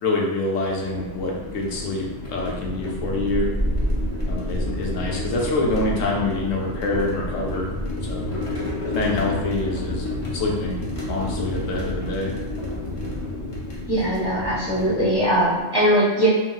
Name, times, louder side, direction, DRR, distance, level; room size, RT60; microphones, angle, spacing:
voice 1, 0.0-3.5 4.3-7.7 8.0-8.3 8.9-10.1 10.3-10.8 11.1-12.3, left 2 dB, 85° left, -2 dB, 1.0 m, -26 dB
sound 1, 0.6-15.6, left 1 dB, 40° left, 0.5 m, -29 dB
voice 2, 13.9-16.3, equal, 25° right, -9 dB, 0.5 m, -20 dB
3.8 x 2.0 x 2.3 m, 1.2 s
omnidirectional pair, 1.3 m